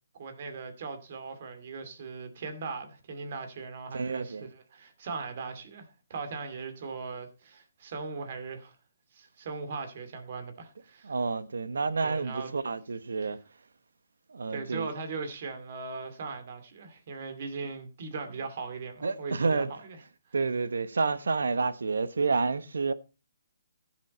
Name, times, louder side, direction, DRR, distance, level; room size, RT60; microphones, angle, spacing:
voice 1, 0.2-8.8 9.1-11.1 12.0-12.5 13.2-13.3 14.5-19.8, right 4 dB, 45° right, 2.4 m, -39 dB
voice 2, 3.9-4.4 11.0-13.4 14.3-14.9 19.0-19.7 20.3-22.9, right 4 dB, 85° right, 1.1 m, -29 dB
15.5 x 7.5 x 4.2 m
hypercardioid pair, 165°, 0 cm